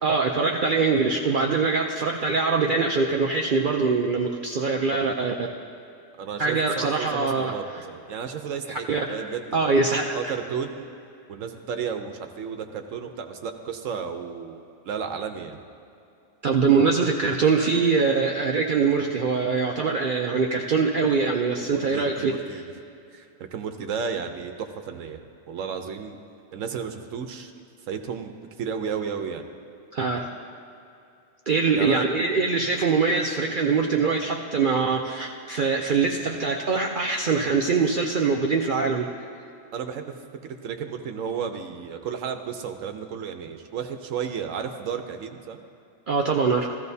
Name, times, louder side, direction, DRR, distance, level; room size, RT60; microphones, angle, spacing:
voice 1, 0.0-5.3 6.4-7.5 8.7-9.3 9.5-10.3 16.4-22.3 29.9-30.3 31.5-39.1 46.1-46.7, right 4 dB, 55° right, 1 dB, 0.6 m, -23 dB
voice 2, 6.2-9.8 10.1-10.9 11.3-15.6 21.6-22.6 23.1-25.2 25.5-26.2 26.5-27.5 27.9-28.3 28.6-29.4 31.7-32.1 39.7-40.1 40.4-45.6, right 6 dB, 80° right, 6 dB, 1.1 m, -33 dB
15.5 x 14.0 x 2.7 m, 2.6 s
omnidirectional pair, 1.3 m